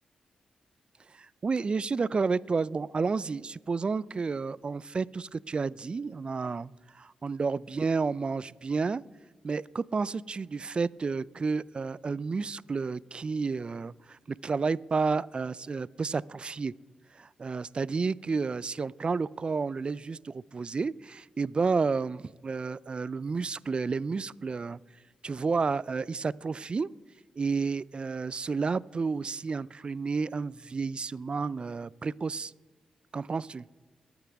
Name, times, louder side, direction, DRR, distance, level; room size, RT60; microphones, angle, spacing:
voice 1, 1.1-9.0 9.4-16.7 17.1-24.8 25.2-26.9 27.4-32.5 33.1-33.6, right 4 dB, 45° right, 21 dB, 0.4 m, -31 dB
22.0 x 8.0 x 3.5 m, 1.3 s
supercardioid pair, 45°, 2 cm